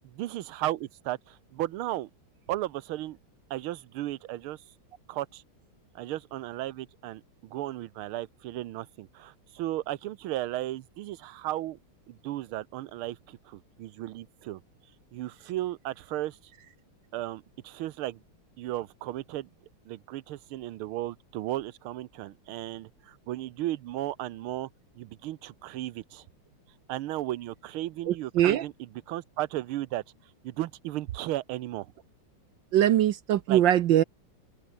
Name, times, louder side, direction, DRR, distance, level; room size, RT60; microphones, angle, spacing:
voice 1, 0.1-2.1 2.5-3.2 3.5-4.6 5.1-5.4 5.9-11.8 12.1-14.6 15.1-16.4 17.1-18.2 18.6-19.5 19.9-24.7 25.0-26.2 26.9-28.7 29.1-30.0 30.4-31.9 33.5-33.6, right 15 dB, 90° right, 1.6 m, -35 dB
voice 2, 28.1-28.7 32.7-34.0, right 12 dB, 70° right, 1.4 m, -22 dB
open air
omnidirectional pair, 2.3 m